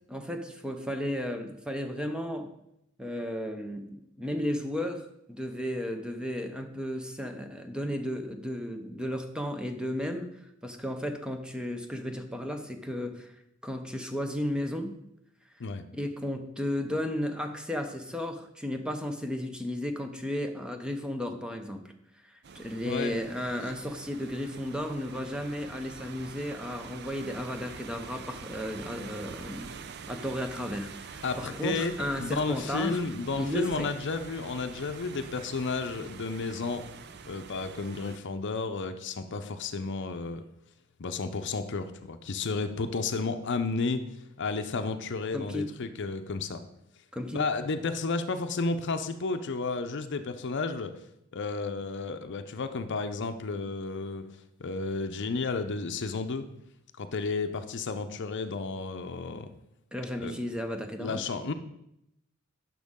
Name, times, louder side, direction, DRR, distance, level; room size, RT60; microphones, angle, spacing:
voice 1, 0.1-2.5 3.0-10.4 10.6-13.3 13.6-15.0 15.9-21.9 22.2-33.0 33.3-33.9 45.3-45.7 47.1-47.4 59.9-61.2, equal, 5° right, 6 dB, 0.6 m, -34 dB
sound 1, 22.4-38.2, right 6 dB, 55° right, 0.5 m, -46 dB
voice 2, 22.9-23.2 23.5-23.6 31.2-36.8 37.3-40.4 41.0-44.0 44.4-46.6 47.3-50.9 51.3-54.3 54.6-56.5 57.0-59.5 60.2-60.3 61.0-61.5, left 4 dB, 60° left, 9 dB, 0.6 m, -32 dB
10.5 x 6.2 x 3.6 m, 0.81 s
head